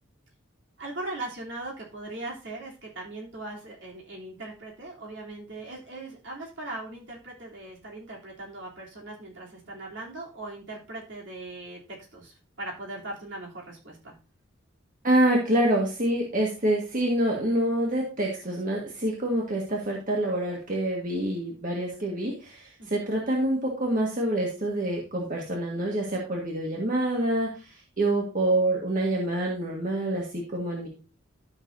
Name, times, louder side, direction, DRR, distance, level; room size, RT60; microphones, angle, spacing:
voice 1, 0.8-11.8 12.1-14.1 22.8-23.1, right 2 dB, 65° right, -3 dB, 3.2 m, -39 dB
voice 2, 15.0-30.9, right 1 dB, 45° right, -2 dB, 1.7 m, -26 dB
12.5 x 6.5 x 2.7 m, 0.32 s
head